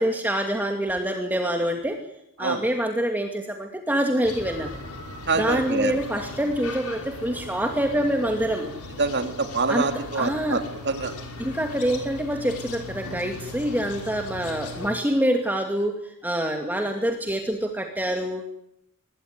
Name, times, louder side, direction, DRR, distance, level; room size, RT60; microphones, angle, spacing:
voice 1, 0.0-2.0 2.4-4.7 5.4-8.7 9.7-9.9 10.2-10.6 11.4-18.4, right 1 dB, 10° right, 3 dB, 2.4 m, -26 dB
sound 1, 4.2-14.9, left 2 dB, 85° left, 5.5 m, -38 dB
voice 2, 5.3-6.0 9.0-11.1, right 4 dB, 50° right, 7 dB, 2.9 m, -26 dB
25.5 x 21.0 x 9.7 m, 0.78 s
head